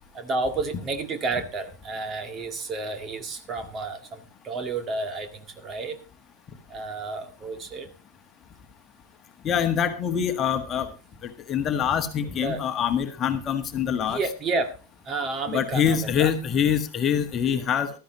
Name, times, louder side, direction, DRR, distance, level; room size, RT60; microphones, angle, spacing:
voice 1, 0.1-6.0 6.7-7.9 12.4-12.6 14.1-14.7 15.1-16.3, right 3 dB, 25° right, 7 dB, 1.9 m, -31 dB
voice 2, 9.4-10.9 11.2-14.2 15.5-18.0, left 8 dB, 25° left, 7 dB, 1.5 m, -25 dB
16.0 x 13.0 x 3.0 m, 0.29 s
figure-of-eight pair, 90°, 0 cm